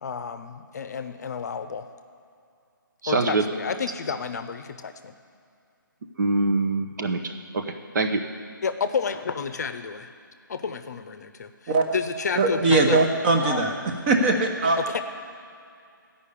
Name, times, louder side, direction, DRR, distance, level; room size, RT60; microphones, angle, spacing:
voice 1, 0.0-1.9 3.1-5.1 8.6-10.1 10.5-11.5 11.9-13.0 13.4-13.6 14.9-15.0, left 6 dB, 50° left, 10 dB, 0.7 m, -30 dB
voice 2, 3.0-3.4 6.2-7.6 7.9-8.2, right 3 dB, 55° right, 5 dB, 1.0 m, -24 dB
voice 3, 12.4-13.7 14.1-15.0, right 3 dB, 30° right, 4 dB, 1.2 m, -21 dB
12.5 x 5.5 x 8.5 m, 2.4 s
figure-of-eight pair, 155°, 12 cm